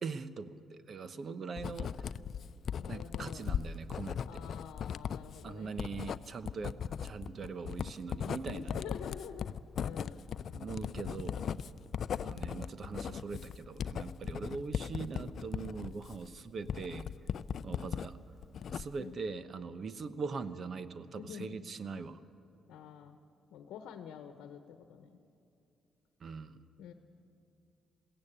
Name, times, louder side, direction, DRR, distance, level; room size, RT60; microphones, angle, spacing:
voice 1, 0.0-2.1 2.9-4.4 5.4-8.8 10.5-11.4 12.2-17.1 17.6-18.2 18.7-22.2 26.2-26.6, right 4 dB, 50° right, 13 dB, 1.0 m, -41 dB
Writing, 1.6-18.1 18.4-19.1, left 8 dB, 60° left, 0.4 m, -38 dB
voice 2, 2.8-3.4 4.2-5.8 8.5-9.5 9.8-10.3 17.6-18.1 19.0-19.2 21.2-21.6 22.7-23.2 23.5-25.1 26.8-26.9, left 8 dB, 85° left, 8 dB, 1.0 m, -47 dB
21.5 x 16.0 x 8.7 m, 2.7 s
cardioid pair, 90°, 0 cm